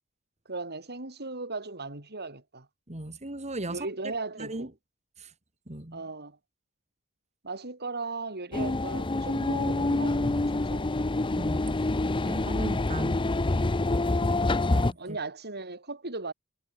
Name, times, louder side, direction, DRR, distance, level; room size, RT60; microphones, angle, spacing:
voice 1, 0.5-2.7 3.7-4.7 5.9-6.4 7.4-11.1 15.0-16.3, right 3 dB, 50° right, 6.7 m, -37 dB
voice 2, 2.9-3.8 4.4-4.7 5.2-5.3 5.7-6.0 11.4-11.6 12.2-13.2 14.7-15.2, right 1 dB, 30° right, 2.7 m, -37 dB
sound 1, 8.5-14.9, left 2 dB, 25° left, 0.7 m, -26 dB
head